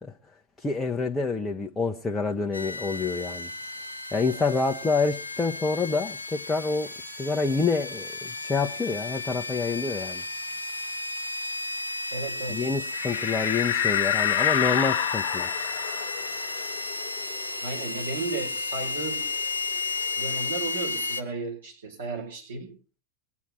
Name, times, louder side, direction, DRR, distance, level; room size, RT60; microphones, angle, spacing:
voice 1, 0.6-3.5 4.1-10.2 12.5-15.5, left 4 dB, 10° left, 0.9 m, -27 dB
sound 1, 2.5-21.2, left 3 dB, 80° left, 1.1 m, -33 dB
voice 2, 12.1-12.6 17.6-19.3 20.2-22.7, right 3 dB, 70° right, 4.8 m, -34 dB
sound 2, 12.9-18.1 18.5-18.6 18.9-20.6, left 11 dB, 45° left, 1.0 m, -29 dB
21.5 x 8.4 x 6.1 m
figure-of-eight pair, 90°, 0 cm